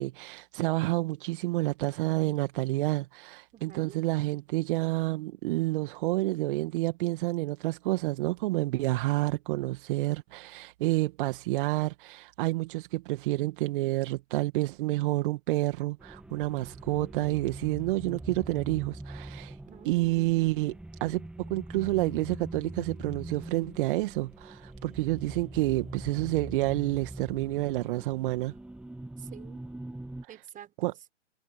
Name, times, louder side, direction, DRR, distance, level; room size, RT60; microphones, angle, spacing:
voice 1, 0.0-19.6 19.9-20.8 21.0-28.5 30.2-30.4 30.8-30.9, right 19 dB, 45° right, 1.8 m, -29 dB
voice 2, 3.5-4.0 19.6-19.9 29.2-29.6 30.3-31.1, right 10 dB, 20° right, 6.2 m, -48 dB
sound 1, 16.0-30.2, right 1 dB, 5° right, 1.4 m, -43 dB
hypercardioid pair, 120°, 36 cm